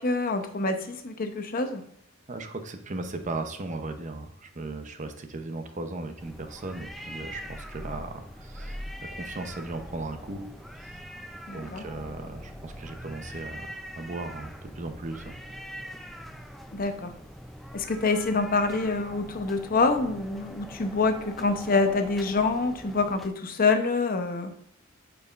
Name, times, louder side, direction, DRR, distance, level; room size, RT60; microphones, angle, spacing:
voice 1, 0.0-1.8 11.5-11.8 16.7-17.1 17.7-24.5, left 3 dB, 45° left, 7 dB, 0.7 m, -26 dB
voice 2, 2.3-10.5 10.8-11.2 11.5-15.4, right 2 dB, 35° right, 7 dB, 0.7 m, -37 dB
sound 1, 6.2-23.3, equal, ahead, 0.4 m, -43 dB
8.2 x 4.7 x 2.4 m, 0.74 s
head